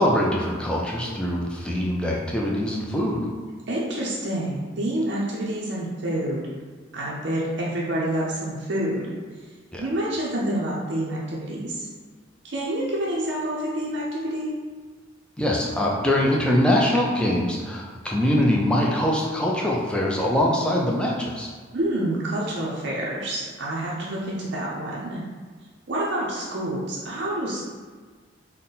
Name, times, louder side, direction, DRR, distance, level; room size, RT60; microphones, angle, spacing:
voice 1, 0.0-3.3 9.7-9.9 15.4-21.5, left 1 dB, 5° left, -3 dB, 0.4 m, -23 dB
voice 2, 3.7-6.5 6.9-9.1 9.8-11.9 12.4-14.5 21.7-25.2 25.9-27.6, right 1 dB, 55° right, -5 dB, 0.5 m, -28 dB
3.8 x 2.1 x 3.9 m, 1.5 s
head